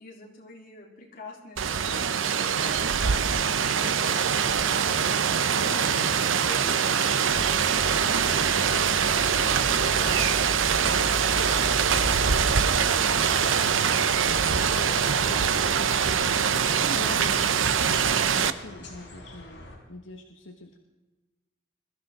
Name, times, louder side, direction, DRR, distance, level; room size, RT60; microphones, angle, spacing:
voice 1, 0.0-13.7, left 2 dB, 50° left, -3 dB, 3.7 m, -45 dB
Rain, 1.6-18.5, right 7 dB, 90° right, 0.7 m, -23 dB
sound 1, 7.2-19.8, equal, 65° left, 4.2 m, -38 dB
voice 2, 16.5-20.8, left 1 dB, 80° left, 3 dB, 1.2 m, -43 dB
21.5 x 13.0 x 3.8 m, 1.2 s
head